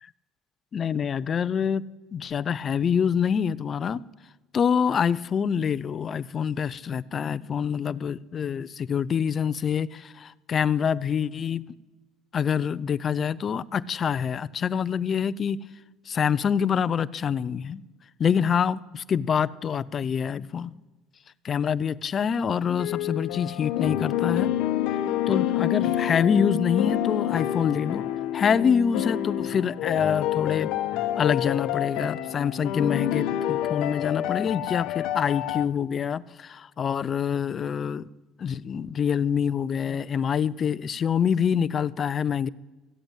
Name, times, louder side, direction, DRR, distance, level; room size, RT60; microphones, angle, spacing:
voice 1, 0.7-1.8 2.1-4.0 4.5-11.6 12.3-15.6 16.1-17.8 18.2-20.8 21.4-24.5 25.3-28.0 28.3-30.7 31.2-38.1 38.4-42.5, left 7 dB, 40° left, 17 dB, 0.5 m, -26 dB
sound 1, 22.7-35.7, left 12 dB, 75° left, 0.9 m, -28 dB
14.5 x 8.0 x 8.8 m, 1.2 s
supercardioid pair, 100°, 0 cm